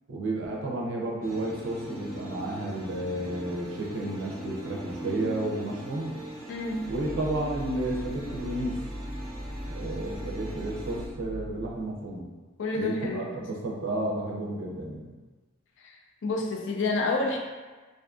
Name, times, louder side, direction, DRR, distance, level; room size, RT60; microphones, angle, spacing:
voice 1, 0.1-6.1 6.9-8.8 9.7-12.3 12.7-15.1, right 1 dB, 65° right, -2 dB, 0.5 m, -32 dB
sound 1, 1.2-11.0, right 1 dB, 5° left, 0.8 m, -41 dB
voice 2, 6.5-6.9 12.6-13.4 15.8-17.4, left 2 dB, 65° left, 0 dB, 0.4 m, -29 dB
sound 2, 6.6-12.0, equal, 10° right, 0.4 m, -39 dB
2.5 x 2.4 x 2.3 m, 1.3 s
head